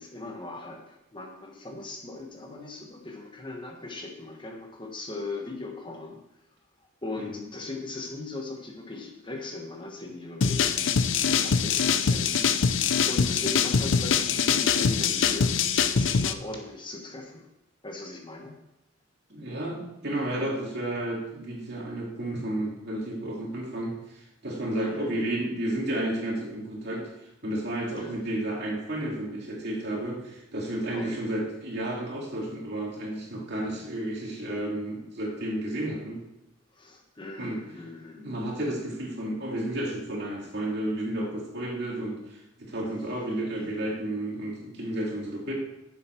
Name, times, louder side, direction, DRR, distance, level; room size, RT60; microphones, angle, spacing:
voice 1, 0.0-6.2 7.0-10.7 11.4-12.5 12.7-15.6 15.9-17.5 17.8-18.5 24.8-25.5 27.9-28.2 30.9-31.2 36.7-38.2, left 2 dB, 25° left, 2 dB, 1.3 m, -39 dB
sound 1, 10.4-16.3, left 6 dB, 70° left, 0.6 m, -24 dB
voice 2, 19.3-27.1 27.4-36.2 37.4-37.6 38.2-45.5, right 1 dB, 55° right, -2 dB, 2.5 m, -32 dB
10.5 x 7.3 x 4.5 m, 0.87 s
head